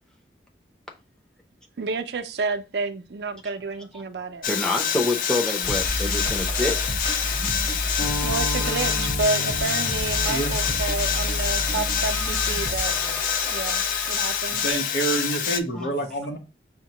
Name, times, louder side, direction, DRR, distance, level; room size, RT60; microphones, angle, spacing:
voice 1, 1.8-4.5 8.2-12.9 13.5-14.7, right 3 dB, 75° right, 0.5 m, -30 dB
sound 1, 4.4-15.6, left 8 dB, 50° left, 0.3 m, -27 dB
voice 2, 4.5-6.8 15.8-15.9, left 2 dB, 5° left, 0.6 m, -26 dB
sound 2, 5.6-14.7, left 1 dB, 30° left, 1.1 m, -30 dB
sound 3, 8.0-13.2, left 1 dB, 65° left, 1.5 m, -36 dB
voice 3, 10.3-10.6 14.2-16.4, right 2 dB, 90° left, 1.1 m, -28 dB
6.2 x 2.2 x 2.8 m
head